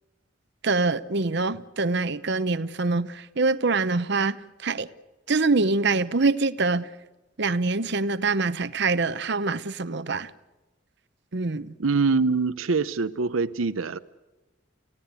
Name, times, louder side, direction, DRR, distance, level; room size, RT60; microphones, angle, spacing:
voice 1, 0.6-4.9 5.3-6.9 7.4-10.3 11.3-11.7, right 3 dB, 55° right, 0.8 m, -25 dB
voice 2, 11.8-14.0, right 4 dB, 85° right, 0.7 m, -24 dB
30.0 x 16.0 x 8.2 m
head